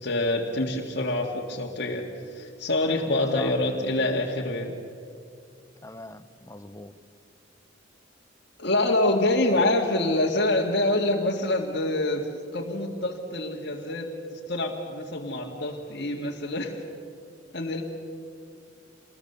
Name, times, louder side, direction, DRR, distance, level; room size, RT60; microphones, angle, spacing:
voice 1, 0.0-2.1 2.3-4.8 8.6-14.1 14.5-16.8 17.5-17.8, left 2 dB, 60° left, -1 dB, 1.9 m, -26 dB
voice 2, 5.8-6.9 9.5-9.7, left 2 dB, 15° left, 10 dB, 0.9 m, -42 dB
27.0 x 20.5 x 7.0 m, 2.3 s
head